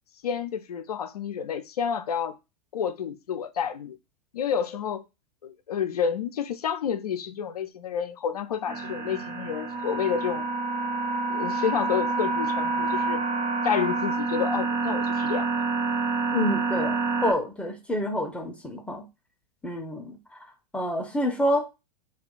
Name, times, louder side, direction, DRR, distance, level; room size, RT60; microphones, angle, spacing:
voice 1, 0.2-2.4 2.7-4.0 4.3-5.0 5.4-10.5 11.3-13.2 13.6-15.5, left 7 dB, 75° left, 0.4 m, -29 dB
sound 1, 8.7-17.3, right 3 dB, 35° right, 0.7 m, -28 dB
voice 2, 16.3-19.0 19.6-20.2 20.7-21.7, left 1 dB, 5° left, 0.5 m, -27 dB
2.3 x 2.3 x 3.7 m
figure-of-eight pair, 95°, 20 cm